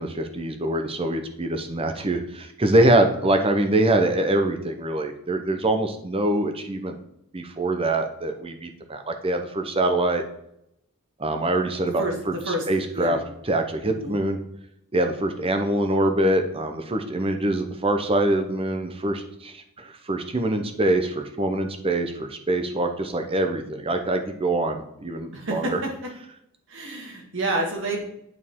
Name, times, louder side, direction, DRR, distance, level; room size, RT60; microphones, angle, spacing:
voice 1, 0.0-7.0 7.3-10.2 11.2-13.2 13.5-14.4 14.9-25.8, right 1 dB, 25° right, 6 dB, 0.7 m, -24 dB
voice 2, 11.8-12.1 12.5-12.6 12.9-13.2 13.8-14.2 25.3-25.9 26.7-28.0, right 1 dB, 60° right, 0 dB, 1.9 m, -28 dB
8.5 x 4.9 x 3.7 m, 0.77 s
head